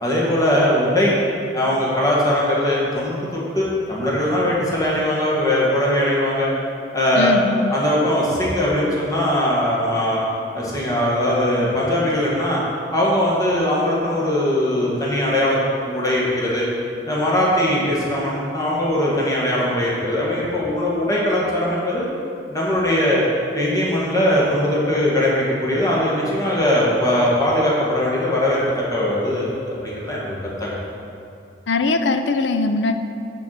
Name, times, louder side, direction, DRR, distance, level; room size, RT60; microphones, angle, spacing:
voice 1, 0.0-1.2 1.5-6.5 6.9-7.3 7.7-10.2 10.5-12.6 12.9-16.7 17.1-22.0 22.5-23.2 23.5-28.6 28.9-30.8, left 1 dB, 20° left, -6 dB, 1.7 m, -20 dB
voice 2, 7.2-7.7 31.7-32.9, left 3 dB, 80° left, 8 dB, 0.5 m, -20 dB
8.4 x 4.6 x 6.5 m, 2.6 s
head